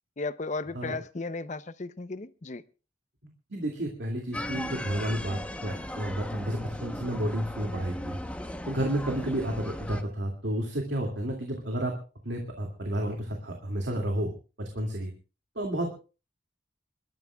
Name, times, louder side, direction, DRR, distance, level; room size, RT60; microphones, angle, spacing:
voice 1, 0.2-2.6, left 3 dB, 40° left, 0.6 m, -35 dB
voice 2, 3.5-8.2 8.7-11.9 12.2-14.3 14.6-15.1 15.6-15.9, right 1 dB, 75° right, 2.4 m, -31 dB
sound 1, 4.3-10.0, left 1 dB, 5° left, 0.9 m, -37 dB
28.0 x 13.0 x 2.3 m
head